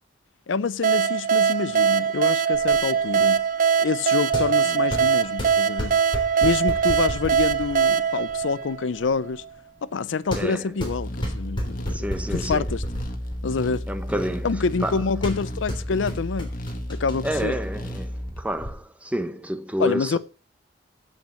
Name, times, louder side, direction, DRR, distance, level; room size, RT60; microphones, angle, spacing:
voice 1, 0.5-3.4 3.8-6.0 6.4-9.4 9.8-12.1 12.3-12.8 13.4-13.9 14.4-16.5 16.9-17.5 19.8-20.2, left 5 dB, 75° left, 0.5 m, -27 dB
sound 1, 0.8-9.3, right 7 dB, 45° right, 0.6 m, -22 dB
sound 2, 2.5-18.7, equal, 25° left, 3.2 m, -35 dB
voice 2, 10.3-10.7 11.9-12.7 13.9-15.0 17.2-20.2, equal, 5° right, 0.9 m, -29 dB
sound 3, 10.9-18.4, equal, 50° left, 1.7 m, -33 dB
8.1 x 7.3 x 7.5 m
head